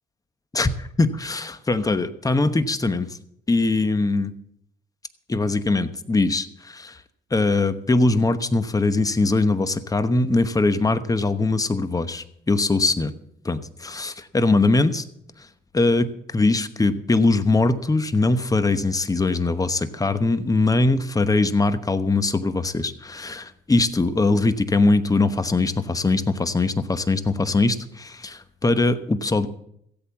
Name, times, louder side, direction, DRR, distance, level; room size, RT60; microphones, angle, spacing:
voice 1, 0.5-3.2 3.5-4.3 5.3-7.0 7.3-13.1 13.4-15.0 15.7-29.5, left 3 dB, 15° left, 12 dB, 1.0 m, -21 dB
15.5 x 8.5 x 7.1 m, 0.71 s
cardioid pair, 90°, 20 cm